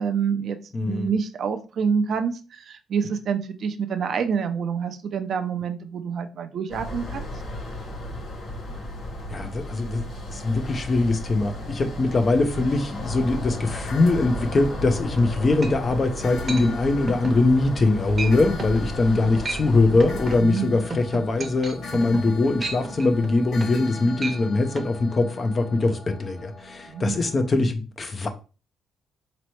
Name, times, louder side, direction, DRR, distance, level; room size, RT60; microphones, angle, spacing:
voice 1, 0.0-0.6 0.9-7.3 19.1-19.3 20.4-20.7 26.9-27.2, right 6 dB, 60° right, 0.5 m, -27 dB
voice 2, 0.7-1.1 9.3-28.3, left 3 dB, 40° left, 0.6 m, -22 dB
sound 1, 6.7-20.4, left 1 dB, 60° left, 1.3 m, -34 dB
sound 2, 13.0-27.5, left 3 dB, 80° left, 1.2 m, -41 dB
sound 3, 15.2-15.3 15.6-16.0 16.5-16.7 17.1-17.4 17.7-17.9 18.2-18.3 18.6-18.8 19.3-19.7 20.0-23.9 24.2-24.4 24.8-24.9, right 3 dB, 35° right, 0.8 m, -33 dB
4.1 x 3.0 x 3.1 m
cardioid pair, 90°, 0 cm